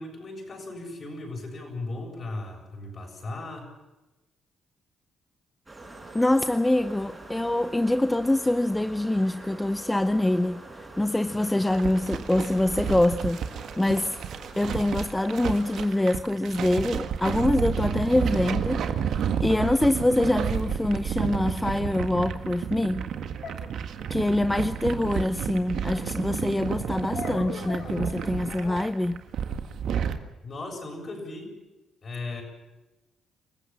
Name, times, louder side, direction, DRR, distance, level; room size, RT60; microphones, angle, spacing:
voice 1, 0.0-3.7 30.4-31.5 32.0-32.4, left 2 dB, 45° left, 7.3 m, -37 dB
sound 1, 5.7-16.1, right 2 dB, 15° right, 6.4 m, -44 dB
voice 2, 6.1-14.2 14.6-23.1 24.1-29.2, left 1 dB, 10° left, 0.7 m, -25 dB
sound 2, 11.7-30.2, right 8 dB, 70° right, 1.7 m, -31 dB
sound 3, 23.4-24.4 27.1-28.8, left 6 dB, 65° left, 2.4 m, -40 dB
27.5 x 15.0 x 7.3 m
cardioid pair, 90°, 0 cm